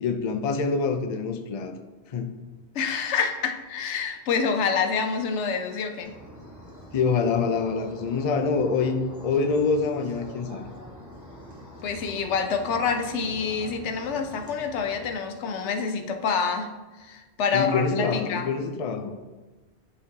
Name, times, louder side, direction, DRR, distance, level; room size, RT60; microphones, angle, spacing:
voice 1, 0.0-1.8 2.1-2.3 6.9-9.0 9.2-10.7 17.5-19.1, left 5 dB, 45° left, 7 dB, 0.5 m, -25 dB
voice 2, 2.7-6.1 11.8-16.7 17.0-18.6, left 5 dB, 90° left, 6 dB, 1.0 m, -27 dB
sound 1, 6.0-15.1, equal, 15° right, 0.9 m, -44 dB
11.0 x 3.7 x 2.8 m, 1.2 s
omnidirectional pair, 1.1 m